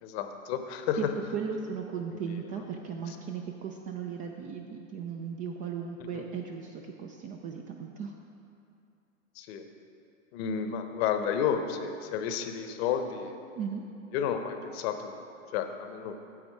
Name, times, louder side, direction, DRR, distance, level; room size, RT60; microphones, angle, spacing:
voice 1, 0.0-1.1 2.1-2.6 3.1-3.2 6.0-6.2 9.3-9.6 10.3-13.4 14.1-15.1 15.5-16.2, left 8 dB, 50° left, 7 dB, 0.9 m, -32 dB
voice 2, 1.3-8.1 13.5-13.8, right 6 dB, 20° right, 2 dB, 0.4 m, -36 dB
9.5 x 7.7 x 4.7 m, 2.6 s
hypercardioid pair, 110°, 41 cm